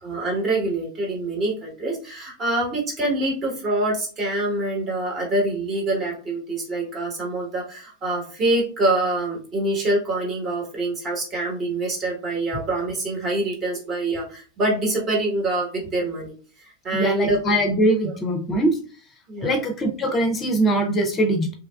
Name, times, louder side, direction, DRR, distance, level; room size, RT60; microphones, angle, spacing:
voice 1, 0.0-17.4 19.3-19.6, right 2 dB, 25° right, -2 dB, 1.2 m, -25 dB
voice 2, 16.9-18.8 19.4-21.5, right 1 dB, 20° left, 5 dB, 0.6 m, -22 dB
2.9 x 2.3 x 2.3 m, 0.39 s
figure-of-eight pair, 90°, 0 cm